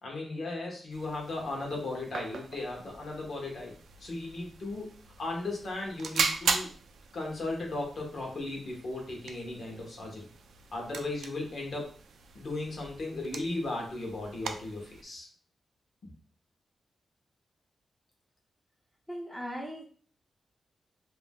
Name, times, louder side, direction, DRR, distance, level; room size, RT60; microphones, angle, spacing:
voice 1, 0.0-3.7 4.0-4.9 5.2-6.7 7.1-10.2 10.7-11.9 12.3-15.3, left 2 dB, 55° left, 0 dB, 0.9 m, -36 dB
sound 1, 0.9-15.0, right 5 dB, 80° right, 0.3 m, -39 dB
voice 2, 19.1-19.8, equal, 5° left, 0 dB, 0.4 m, -38 dB
2.6 x 2.2 x 3.4 m, 0.44 s
wide cardioid pair, 175°, 0 cm